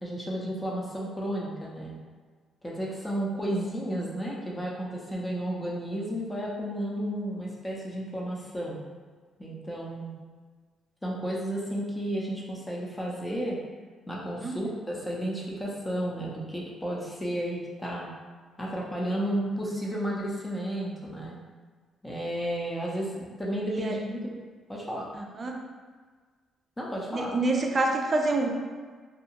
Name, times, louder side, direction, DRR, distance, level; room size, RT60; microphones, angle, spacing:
voice 1, 0.0-1.9 2.6-8.8 9.4-10.1 11.0-13.6 14.1-18.1 18.6-21.4 22.0-24.4 24.7-25.1 26.8-27.3, equal, 15° left, -4 dB, 0.6 m, -32 dB
voice 2, 25.1-25.6 27.1-28.5, right 2 dB, 35° right, 1 dB, 0.4 m, -27 dB
2.6 x 2.3 x 2.8 m, 1.5 s
cardioid pair, 90°, 0 cm